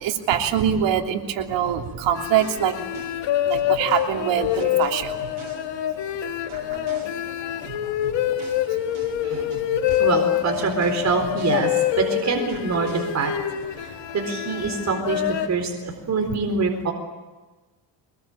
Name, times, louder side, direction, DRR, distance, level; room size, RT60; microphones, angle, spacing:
voice 1, 0.0-2.7 3.5-5.2, right 9 dB, 85° right, 3 dB, 3.2 m, -23 dB
sound 1, 1.7-6.1 6.5-12.1 12.5-13.7, right 6 dB, 65° right, 5.5 m, -44 dB
sound 2, 2.2-15.5, left 11 dB, 80° left, 2.5 m, -26 dB
voice 2, 10.0-13.3 13.8-16.9, right 4 dB, 40° right, 4 dB, 4.2 m, -25 dB
24.0 x 21.5 x 8.9 m, 1.2 s
cardioid pair, 120°, 43 cm